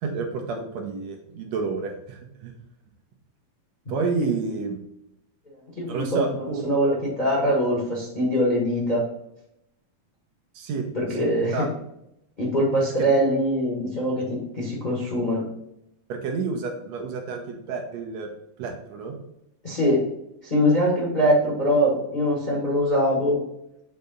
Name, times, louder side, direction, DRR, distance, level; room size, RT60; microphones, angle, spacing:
voice 1, 0.0-2.5 3.9-4.8 5.9-6.7 10.5-10.9 11.2-11.7 16.1-18.3 18.6-19.2, right 4 dB, 70° right, 2 dB, 2.0 m, -30 dB
voice 2, 5.6-9.0 10.9-11.6 12.4-15.5 19.6-20.0 20.4-23.4, equal, 25° left, -4 dB, 1.0 m, -23 dB
6.7 x 3.4 x 5.2 m, 0.80 s
omnidirectional pair, 3.4 m